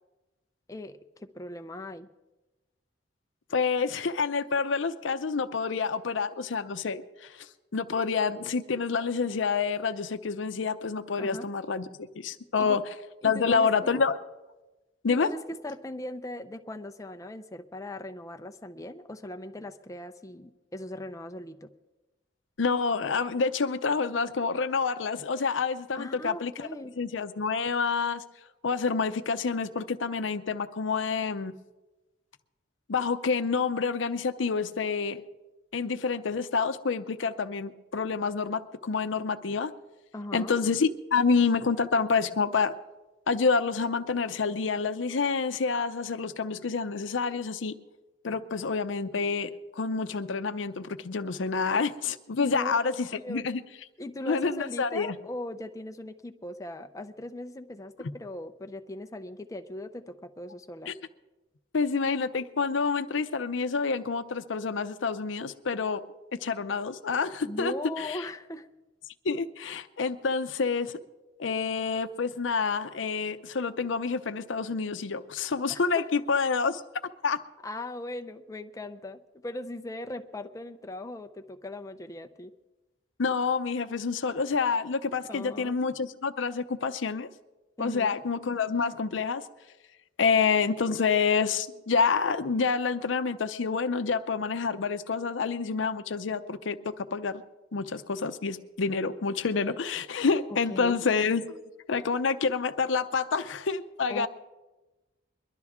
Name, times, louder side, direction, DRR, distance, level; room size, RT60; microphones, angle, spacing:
voice 1, 0.7-2.1 11.2-11.5 12.6-12.8 13.2-14.0 15.1-21.7 26.0-26.9 40.1-40.6 52.4-53.5 54.0-60.9 67.4-68.7 75.7-76.1 77.6-82.5 85.3-85.8 87.8-88.2 100.7-101.0 101.5-101.6 104.1-104.3, left 1 dB, 15° left, 6 dB, 0.6 m, -39 dB
voice 2, 3.5-7.5 7.7-12.8 13.2-14.1 15.0-15.3 22.6-26.7 27.0-28.2 28.6-31.5 32.9-35.2 35.7-39.7 40.3-42.7 43.3-47.7 48.2-49.5 49.8-53.6 54.3-55.2 60.9-61.0 61.7-66.0 66.3-68.2 69.2-70.9 71.4-76.8 77.2-77.4 83.2-87.3 87.8-89.5 90.2-97.4 97.7-101.4 101.9-104.3, left 5 dB, 80° left, 10 dB, 0.6 m, -28 dB
22.5 x 12.0 x 3.6 m, 1.1 s
head